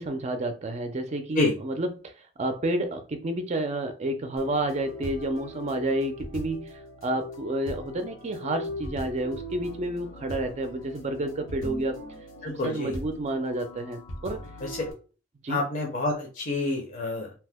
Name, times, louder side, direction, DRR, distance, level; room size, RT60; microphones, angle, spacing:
voice 1, 0.0-2.1 2.4-6.7 7.0-12.0 12.5-14.5 15.4-15.6, right 1 dB, 35° right, 0.4 m, -30 dB
sound 1, 4.4-14.9, left 1 dB, 90° left, 0.9 m, -40 dB
voice 2, 12.4-12.9 14.6-14.8 15.5-17.3, left 2 dB, 45° left, 0.7 m, -28 dB
2.8 x 2.1 x 3.4 m
head